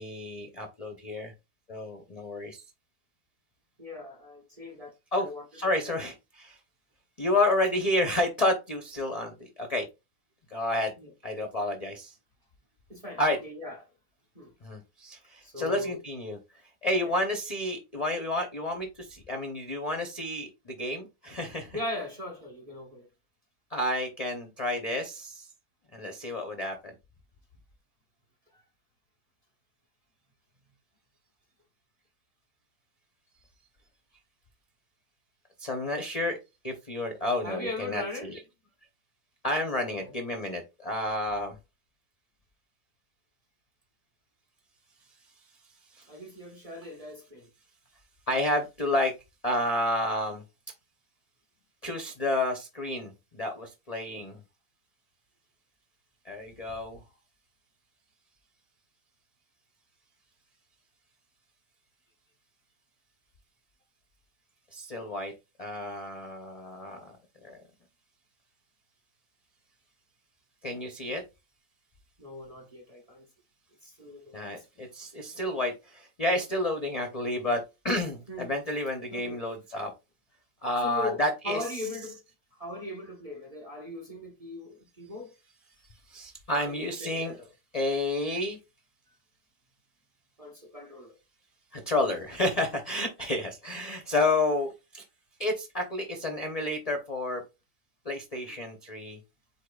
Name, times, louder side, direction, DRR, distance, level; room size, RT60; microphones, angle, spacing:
voice 1, 0.0-1.3 1.7-2.6 5.1-5.3 5.5-6.6 7.2-9.9 10.5-10.9 11.2-12.1 13.2-13.4 14.6-16.4 16.8-21.8 23.7-25.5 25.9-26.9 35.6-36.4 36.6-38.4 39.4-41.6 45.9-46.1 48.3-49.1 49.4-50.4 51.8-54.4 56.2-57.0 64.7-65.3 65.6-67.1 67.4-67.6 70.6-71.2 74.3-79.9 80.6-81.6 86.1-87.4 87.7-88.6 91.7-95.0 95.4-97.4 98.0-99.2, left 1 dB, 45° left, 0.4 m, -30 dB
voice 2, 3.8-4.9 5.2-6.0 11.0-11.1 12.9-13.8 14.3-14.5 15.4-16.0 17.0-17.1 21.7-23.1 28.5-28.6 37.4-38.3 39.9-40.1 46.1-47.5 54.1-54.2 72.2-73.3 73.8-74.5 78.3-78.5 79.1-79.4 80.8-82.2 82.5-85.3 86.5-87.5 89.1-89.2 90.4-91.1, left 2 dB, 25° right, 1.0 m, -39 dB
8.3 x 2.8 x 2.3 m
omnidirectional pair, 1.9 m